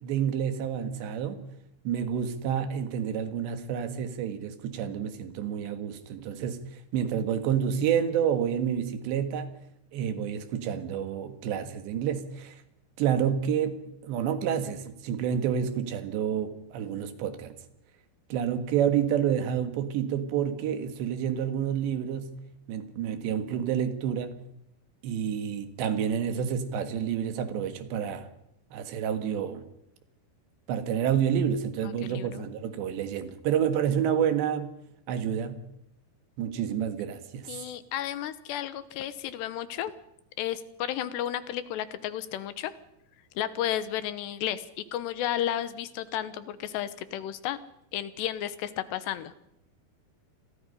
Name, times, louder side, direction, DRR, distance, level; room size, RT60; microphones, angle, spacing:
voice 1, 0.0-1.4 1.9-6.6 6.9-9.5 9.9-12.6 13.0-17.5 18.3-22.3 22.7-24.4 25.0-28.3 28.7-29.6 30.7-34.7 35.1-35.6 36.4-37.5, right 8 dB, 80° right, 9 dB, 3.9 m, -29 dB
voice 2, 31.8-32.5 37.5-40.0 40.4-42.7 43.4-47.6 47.9-49.5, left 11 dB, 80° left, 13 dB, 3.2 m, -33 dB
28.0 x 21.5 x 5.6 m, 0.80 s
omnidirectional pair, 5.0 m